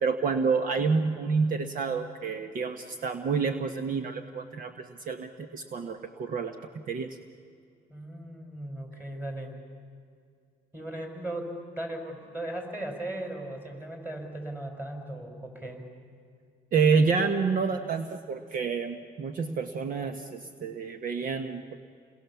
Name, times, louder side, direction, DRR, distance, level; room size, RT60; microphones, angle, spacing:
voice 1, 0.0-6.6 6.9-7.2 16.7-21.8, right 5 dB, 55° right, 7 dB, 1.3 m, -28 dB
voice 2, 7.9-9.5 10.7-15.9, right 1 dB, 10° right, 2 dB, 5.4 m, -37 dB
29.0 x 21.0 x 7.2 m, 2.3 s
cardioid pair, 110°, 17 cm